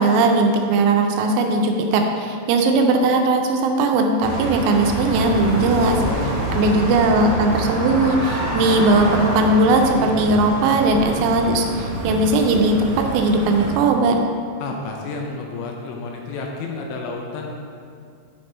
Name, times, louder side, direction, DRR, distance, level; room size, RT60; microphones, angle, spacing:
voice 1, 0.0-6.0 6.6-14.2, right 2 dB, 85° right, 3 dB, 2.9 m, -18 dB
sound 1, 4.2-13.7, right 1 dB, 65° right, 3.0 m, -26 dB
voice 2, 6.0-6.7 14.6-17.5, left 3 dB, 80° left, 1 dB, 2.7 m, -30 dB
9.2 x 4.3 x 3.2 m, 2.3 s
omnidirectional pair, 5.3 m